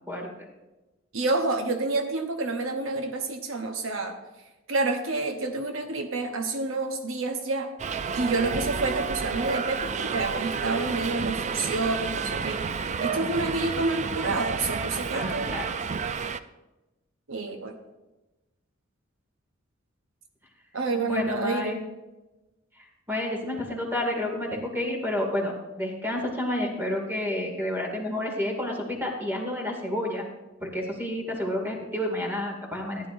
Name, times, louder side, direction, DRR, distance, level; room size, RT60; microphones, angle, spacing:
voice 1, 1.1-4.2 4.7-7.7 8.1-12.6 13.0-15.5 17.3-17.8 20.7-21.8, right 3 dB, 75° right, 4 dB, 0.9 m, -28 dB
Subway metro underground, 7.8-16.4, right 5 dB, 35° right, 0.4 m, -30 dB
voice 2, 13.1-13.5 15.1-15.7 21.1-21.8 22.8-30.2 30.6-33.1, left 1 dB, 10° right, 1 dB, 2.2 m, -30 dB
15.0 x 10.5 x 2.6 m, 1.1 s
head